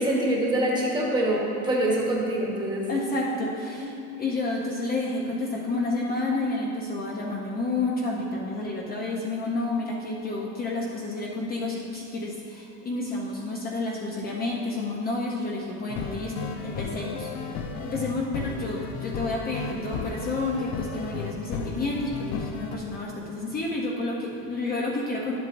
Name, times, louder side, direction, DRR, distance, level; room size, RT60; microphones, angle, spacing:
voice 1, 0.0-2.9 3.8-3.9, right 1 dB, 15° right, -4 dB, 1.2 m, -25 dB
voice 2, 2.9-25.4, left 2 dB, 30° left, -3 dB, 0.7 m, -30 dB
sound 1, 15.9-22.7, left 5 dB, 90° left, 0.8 m, -34 dB
11.5 x 7.8 x 2.6 m, 2.6 s
cardioid pair, 160°, 33 cm